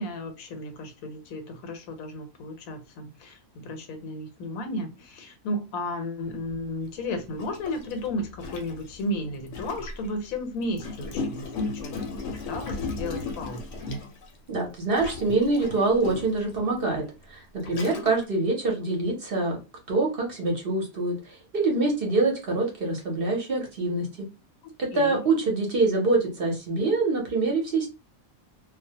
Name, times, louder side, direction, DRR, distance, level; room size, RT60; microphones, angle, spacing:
voice 1, 0.0-12.0 12.3-13.7 17.6-18.1 24.6-25.2, left 1 dB, 90° left, 1.1 m, -34 dB
Gurgling, 6.5-6.6 7.4-10.1 10.7-14.4 15.0-16.4 17.1-17.2 17.6-18.2, left 3 dB, 70° left, 0.8 m, -35 dB
voice 2, 14.5-19.6 19.9-24.1 24.8-27.9, right 3 dB, 50° right, 0.7 m, -25 dB
2.3 x 2.0 x 2.7 m
omnidirectional pair, 1.4 m